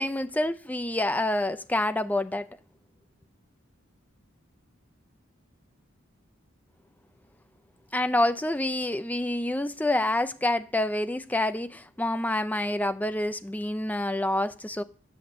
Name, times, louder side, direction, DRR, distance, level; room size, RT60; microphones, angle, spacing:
voice 1, 0.0-2.5 7.9-14.8, left 1 dB, 10° left, 0.5 m, -27 dB
8.5 x 7.6 x 6.6 m
head